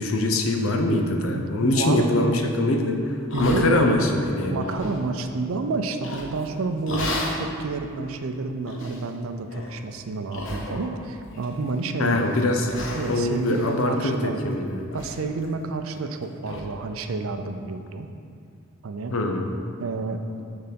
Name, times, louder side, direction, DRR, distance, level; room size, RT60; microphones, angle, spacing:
voice 1, 0.0-4.6 12.0-12.7 13.1-14.8 19.1-19.5, left 2 dB, 80° left, 3 dB, 0.7 m, -23 dB
voice 2, 1.3-2.1 3.3-3.8 4.5-14.4 14.9-18.1 18.8-19.1 19.8-20.2, right 3 dB, 75° right, 7 dB, 0.5 m, -29 dB
sound 1, 3.3-4.1 4.5-5.0 6.0-6.4 6.9-7.4 8.0-8.1 8.7-9.0 9.5-9.7 10.3-11.0 11.3-11.9 12.3-12.4 12.7-14.5 14.9-15.2 15.4-15.5 16.0-16.1 16.4-16.6, left 1 dB, 65° left, 0.9 m, -33 dB
6.7 x 3.9 x 5.2 m, 2.4 s
head